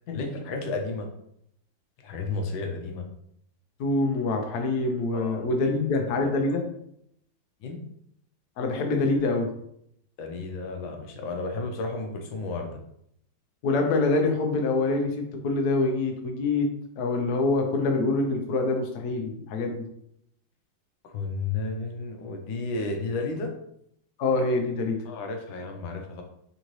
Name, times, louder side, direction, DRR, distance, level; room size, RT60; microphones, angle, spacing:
voice 1, 0.1-1.1 2.0-3.1 5.1-5.4 6.1-6.3 7.6-7.8 10.2-12.7 21.0-23.5 25.1-26.2, left 3 dB, 80° left, 3 dB, 1.4 m, -32 dB
voice 2, 3.8-6.6 8.6-9.5 13.6-16.7 17.0-19.8 24.2-25.0, left 3 dB, 65° left, 3 dB, 1.0 m, -25 dB
4.0 x 3.8 x 3.0 m, 0.73 s
omnidirectional pair, 2.2 m